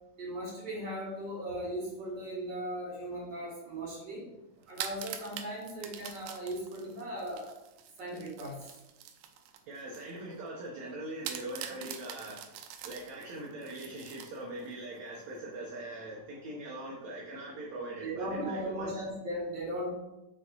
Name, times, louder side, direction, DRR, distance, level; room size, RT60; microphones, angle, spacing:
voice 1, 0.2-4.3 4.7-7.5 8.0-8.7 18.0-19.9, right 1 dB, 30° right, -4 dB, 3.7 m, -37 dB
sound 1, 4.6-10.1 10.5-10.6 11.2-14.7, right 9 dB, 85° right, 2.5 m, -44 dB
voice 2, 9.7-18.9, right 1 dB, 65° right, -3 dB, 2.0 m, -42 dB
6.2 x 5.3 x 5.5 m, 0.93 s
omnidirectional pair, 4.2 m